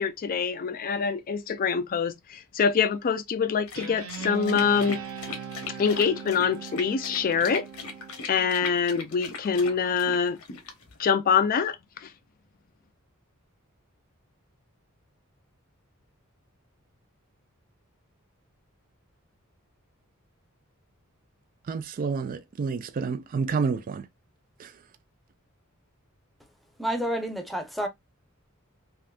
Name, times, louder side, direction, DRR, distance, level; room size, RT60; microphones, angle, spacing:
voice 1, 0.0-5.0 5.8-7.6 8.3-10.4 11.0-11.8 12.0-12.1, left 6 dB, 40° left, 0.4 m, -25 dB
sound 1, 3.7-11.0, left 4 dB, 75° left, 0.9 m, -39 dB
Guitar, 3.7-8.5, right 6 dB, 75° right, 0.7 m, -39 dB
voice 2, 21.7-24.1 24.6-24.7, right 5 dB, 40° right, 0.3 m, -29 dB
voice 3, 26.8-27.9, equal, ahead, 0.7 m, -29 dB
3.5 x 2.6 x 2.3 m
head